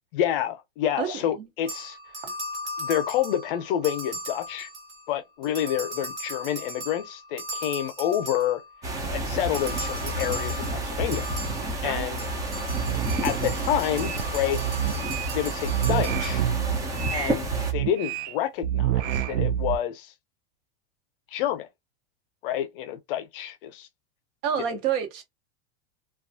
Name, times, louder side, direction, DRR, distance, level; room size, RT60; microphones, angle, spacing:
voice 1, 0.1-2.0 2.8-4.7 5.1-8.6 9.1-11.3 11.8-12.2 13.2-14.6 15.3-16.4 17.1-20.1 21.3-21.7 22.4-23.9, left 11 dB, 60° left, 0.6 m, -28 dB
voice 2, 1.0-1.5 11.8-12.6 24.4-25.2, right 8 dB, 60° right, 1.0 m, -30 dB
sound 1, 1.7-5.1 5.4-8.9 9.5-16.8, equal, 40° right, 1.3 m, -38 dB
sound 2, 8.8-17.7, right 1 dB, 10° right, 0.3 m, -30 dB
sound 3, 12.7-14.2 14.5-15.3 15.7-18.3 18.6-19.8, right 11 dB, 90° right, 0.5 m, -28 dB
2.3 x 2.2 x 2.6 m
supercardioid pair, 145°, 32 cm